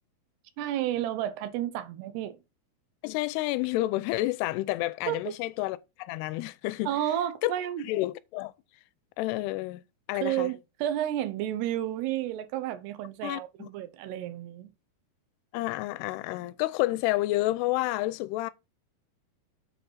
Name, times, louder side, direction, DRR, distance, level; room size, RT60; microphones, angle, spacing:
voice 1, 0.6-2.4 5.1-5.3 6.9-7.8 10.2-14.7, right 12 dB, 85° right, 2.9 m, -31 dB
voice 2, 3.0-6.9 7.4-7.5 7.8-8.5 9.2-9.8 10.1-10.5 13.2-13.7 15.5-18.5, left 18 dB, 90° left, 2.6 m, -29 dB
7.9 x 4.5 x 5.6 m
omnidirectional pair, 4.6 m